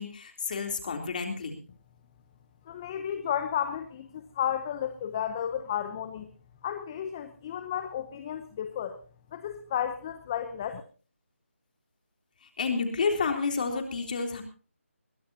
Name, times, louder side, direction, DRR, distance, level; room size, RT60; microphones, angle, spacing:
voice 1, 0.0-1.6 12.4-14.4, left 4 dB, 35° left, 4 dB, 3.4 m, -30 dB
voice 2, 2.7-6.3 6.6-9.0 9.3-10.8, left 9 dB, 20° left, 9 dB, 0.8 m, -33 dB
21.5 x 16.0 x 2.8 m, 0.37 s
figure-of-eight pair, 165°, 8 cm